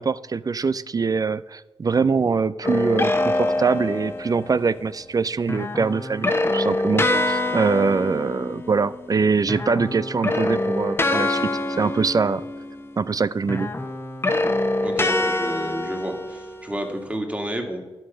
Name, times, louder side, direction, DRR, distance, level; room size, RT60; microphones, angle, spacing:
voice 1, 0.0-11.5 11.8-12.4 13.0-13.7, right 5 dB, 40° right, 17 dB, 0.4 m, -23 dB
sound 1, 2.6-4.5 5.5-9.2 9.4-13.1 13.5-16.9, left 2 dB, 25° left, 1.1 m, -25 dB
voice 2, 14.8-17.8, right 1 dB, 15° right, 3 dB, 2.0 m, -30 dB
9.5 x 6.5 x 5.5 m, 1.1 s
supercardioid pair, 50°, 10 cm